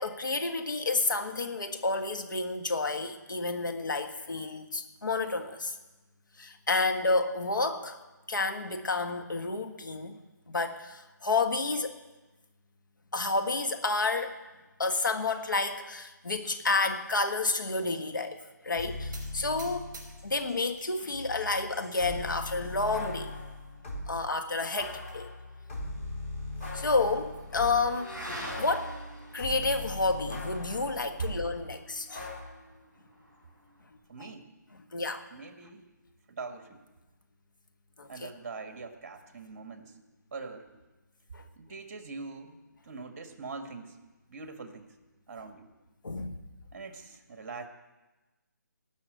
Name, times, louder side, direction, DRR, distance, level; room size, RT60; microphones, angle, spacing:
voice 1, 0.0-5.8 6.4-8.0 8.3-10.2 10.5-12.0 13.1-14.4 14.8-19.9 20.2-23.3 24.1-25.3 26.7-28.1 28.6-28.9 29.3-32.3 34.2-34.3 34.9-35.3 38.0-38.3 41.3-41.4 46.0-46.4, left 3 dB, 80° left, 6 dB, 1.7 m, -30 dB
sound 1, 18.8-20.5 20.8-24.1 24.8-28.0 28.4-31.5 32.1-32.4, left 2 dB, 45° left, 3.8 m, -39 dB
sound 2, 19.1-20.9 21.3-21.9 22.5-22.6 22.9-23.0 23.3-23.4 24.5-25.2, right 3 dB, 15° right, 4.8 m, -51 dB
Motorcycle / Accelerating revving vroom, 25.3-34.0, equal, 10° left, 3.9 m, -47 dB
voice 2, 34.1-34.5 35.3-35.9 36.3-36.9 38.1-40.0 40.3-40.7 41.6-42.6 42.8-44.0 44.3-44.9 45.3-45.7 46.7-47.7, right 4 dB, 45° right, 6 dB, 1.8 m, -43 dB
18.5 x 6.3 x 7.9 m, 1.1 s
hypercardioid pair, 160°, 10 cm